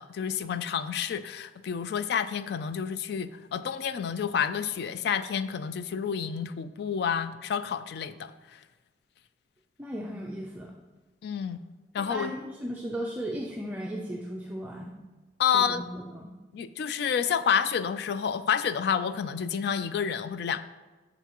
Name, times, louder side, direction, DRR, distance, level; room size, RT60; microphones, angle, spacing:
voice 1, 0.0-8.3 11.2-11.6 11.9-12.3 15.4-15.8 16.5-20.6, left 7 dB, 60° left, 12 dB, 0.3 m, -29 dB
voice 2, 9.8-10.7 12.0-15.0 15.5-16.3, equal, 10° right, -2 dB, 0.5 m, -36 dB
7.0 x 5.7 x 2.9 m, 1.2 s
head